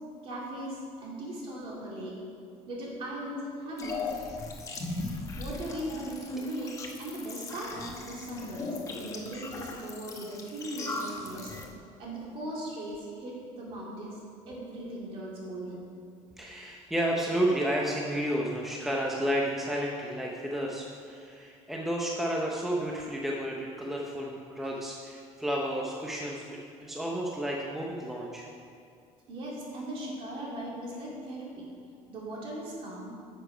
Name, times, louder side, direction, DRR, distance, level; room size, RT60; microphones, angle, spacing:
voice 1, 0.2-2.2 2.7-4.1 5.4-11.5 12.0-14.2 14.5-15.9 29.3-31.7 32.1-33.1, right 1 dB, 45° right, -4 dB, 2.5 m, -38 dB
sound 1, 3.8-11.7, left 3 dB, 25° left, 0.9 m, -38 dB
voice 2, 16.4-28.5, right 1 dB, ahead, -2 dB, 0.6 m, -31 dB
9.7 x 6.9 x 5.0 m, 2.4 s
cardioid pair, 165°, 13 cm